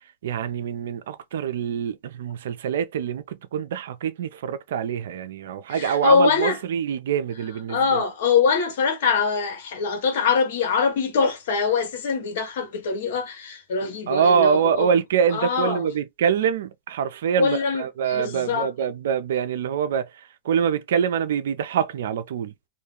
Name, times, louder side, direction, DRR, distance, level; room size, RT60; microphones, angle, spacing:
voice 1, 0.2-8.0 14.1-22.5, right 7 dB, 75° right, 0.5 m, -25 dB
voice 2, 5.7-6.6 7.7-14.9 15.3-15.8 17.4-18.7, left 5 dB, 70° left, 1.0 m, -23 dB
2.5 x 2.2 x 3.1 m
hypercardioid pair, 120°, 0 cm